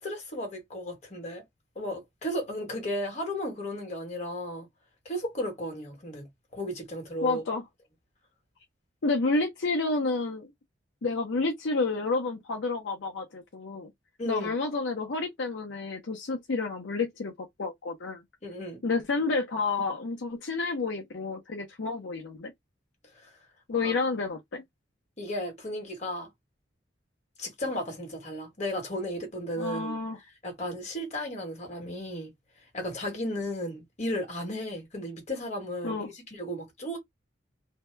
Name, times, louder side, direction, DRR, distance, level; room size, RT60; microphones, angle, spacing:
voice 1, 0.0-1.4 1.7-4.7 5.0-7.4 14.2-14.5 18.4-18.8 23.2-23.3 23.7-23.9 25.2-26.3 27.4-29.9 30.4-32.3 32.7-37.0, equal, 40° left, 1.3 m, -34 dB
voice 2, 7.2-7.6 9.0-10.5 11.0-13.9 14.3-18.2 18.8-22.5 23.7-24.6 29.6-30.2 35.8-36.1, left 3 dB, 75° left, 0.6 m, -30 dB
2.7 x 2.2 x 3.2 m
head